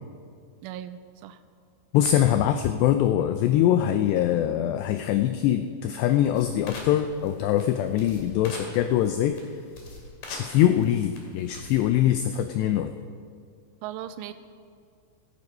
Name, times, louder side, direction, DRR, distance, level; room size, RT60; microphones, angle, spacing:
voice 1, 0.6-1.4 13.8-14.3, right 11 dB, 90° right, 12 dB, 3.2 m, -37 dB
voice 2, 1.9-9.4 10.3-12.9, left 11 dB, 90° left, 9 dB, 2.4 m, -23 dB
sound 1, 6.3-12.0, left 2 dB, 50° left, 3.5 m, -44 dB
15.0 x 15.0 x 5.4 m, 2.2 s
omnidirectional pair, 5.6 m